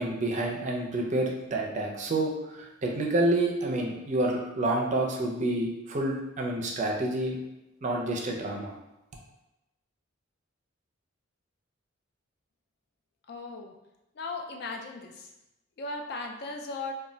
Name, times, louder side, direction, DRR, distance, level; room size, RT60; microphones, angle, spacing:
voice 1, 0.0-7.4 7.8-8.7, right 2 dB, 35° right, 0 dB, 0.4 m, -28 dB
voice 2, 13.3-13.7 14.2-15.3 15.8-16.9, left 3 dB, 50° left, 2 dB, 0.3 m, -37 dB
2.2 x 2.1 x 3.7 m, 0.92 s
head